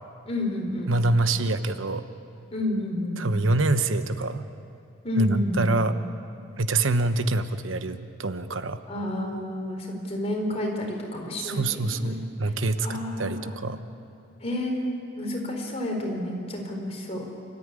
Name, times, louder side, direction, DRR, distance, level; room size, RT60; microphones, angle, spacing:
voice 1, 0.3-1.0 2.5-3.2 5.0-5.8 8.9-12.5 12.8-13.5 14.4-17.3, left 1 dB, 35° left, 1 dB, 4.3 m, -30 dB
voice 2, 0.9-2.0 3.2-4.4 5.2-6.0 6.6-8.8 11.4-13.8, right 2 dB, 90° right, 10 dB, 1.1 m, -25 dB
30.0 x 14.0 x 9.8 m, 2.5 s
head